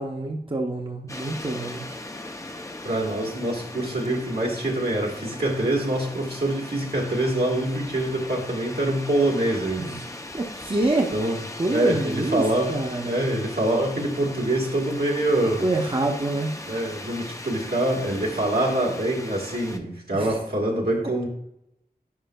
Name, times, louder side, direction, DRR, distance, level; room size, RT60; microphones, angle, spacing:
voice 1, 0.0-1.8 9.8-10.1 10.3-11.1 11.6-12.4 12.7-13.3 15.6-16.5 20.1-20.4, right 2 dB, 30° right, 1 dB, 0.7 m, -26 dB
sound 1, 1.1-19.8, left 1 dB, 20° left, 0.5 m, -39 dB
voice 2, 2.8-9.9 11.1-11.4 11.7-12.7 13.0-15.6 16.7-21.3, right 1 dB, 75° right, -2 dB, 1.5 m, -25 dB
10.5 x 4.9 x 2.2 m, 0.79 s
wide cardioid pair, 45°, 17 cm